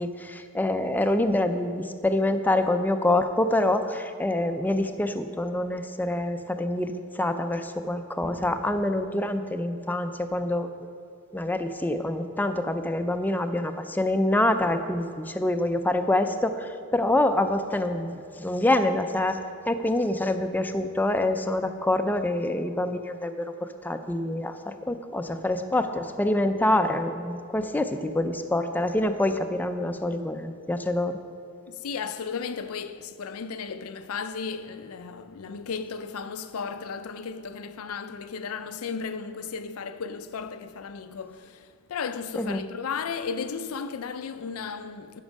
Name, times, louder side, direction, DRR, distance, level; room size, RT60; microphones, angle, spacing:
voice 1, 0.0-10.7 11.3-19.4 19.7-31.1 42.4-42.6, left 1 dB, 10° left, 0.4 m, -26 dB
voice 2, 31.7-45.2, left 5 dB, 80° left, 0.5 m, -35 dB
10.5 x 6.1 x 5.2 m
head